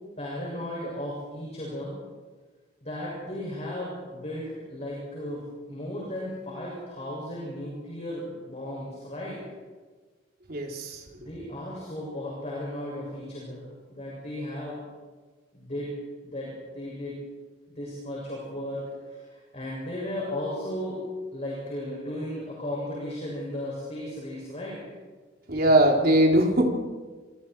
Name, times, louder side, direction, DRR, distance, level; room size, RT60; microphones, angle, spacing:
voice 1, 0.2-1.9 2.8-9.4 11.2-14.8 15.5-15.9 16.2-17.1 17.7-21.0 21.3-24.8, left 1 dB, 30° left, -5 dB, 7.5 m, -35 dB
voice 2, 10.5-10.9 25.5-26.7, right 1 dB, 50° right, 1 dB, 3.7 m, -20 dB
27.5 x 24.5 x 4.8 m, 1.4 s
head